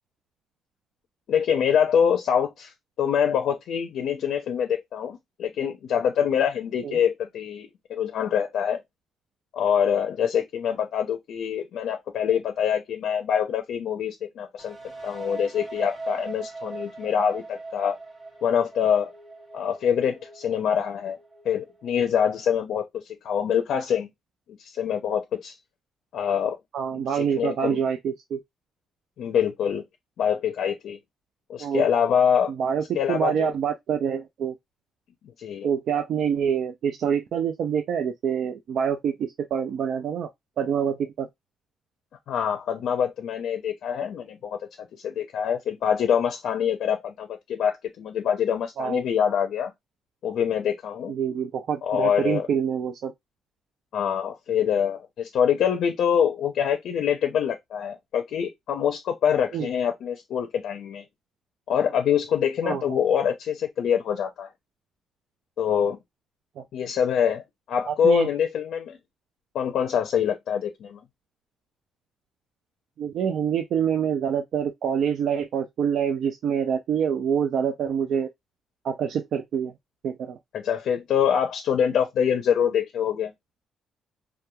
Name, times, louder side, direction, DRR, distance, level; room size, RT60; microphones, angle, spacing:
voice 1, 1.3-2.7 3.0-8.8 9.5-14.8 15.0-18.0 18.4-19.1 19.5-21.2 21.4-24.1 24.6-25.6 26.1-26.6 27.1-27.8 29.2-29.8 30.2-31.0 31.5-32.5 32.9-33.5 35.4-35.7 42.3-44.6 45.0-49.7 50.2-51.1 51.8-52.5 53.9-61.0 61.7-64.5 65.6-66.0 66.7-69.0 69.5-71.0 80.5-83.3, left 8 dB, 65° left, 0.5 m, -25 dB
sound 1, 14.6-22.3, right 3 dB, 20° right, 1.1 m, -40 dB
voice 2, 26.7-28.4 31.6-31.9 32.5-34.5 35.6-40.3 40.6-41.3 48.8-49.0 51.1-53.1 59.5-59.7 62.6-63.0 66.6-66.7 67.9-68.3 73.0-78.3 78.8-79.7 80.0-80.4, right 7 dB, 60° right, 0.3 m, -26 dB
3.0 x 2.2 x 2.2 m
cardioid pair, 150°, 0 cm